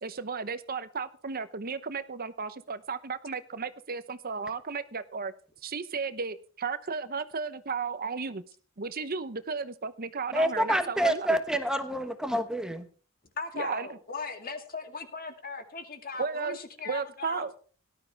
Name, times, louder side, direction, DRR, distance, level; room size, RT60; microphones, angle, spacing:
voice 1, 0.0-5.3 5.6-8.4 8.8-11.4 13.5-13.9 16.2-16.6 16.8-17.6, right 5 dB, 45° right, 12 dB, 0.9 m, -34 dB
voice 2, 10.3-12.9, right 1 dB, 5° right, 7 dB, 1.3 m, -27 dB
voice 3, 13.4-17.5, left 4 dB, 45° left, 6 dB, 2.3 m, -38 dB
18.0 x 12.5 x 3.5 m, 0.40 s
head